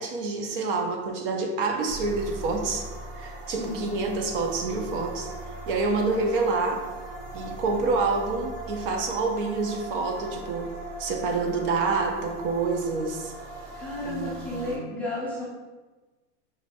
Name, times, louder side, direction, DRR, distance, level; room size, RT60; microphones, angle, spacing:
voice 1, 0.0-2.9 3.2-5.3 5.7-6.8 7.3-10.7 11.0-13.3 14.0-14.7, right 3 dB, 50° right, 2 dB, 0.8 m, -27 dB
sound 1, 1.9-14.8, right 2 dB, 85° right, 1.3 m, -39 dB
voice 2, 13.8-15.5, left 2 dB, 5° left, -9 dB, 0.5 m, -33 dB
6.0 x 3.2 x 2.7 m, 1.2 s
supercardioid pair, 160°, 34 cm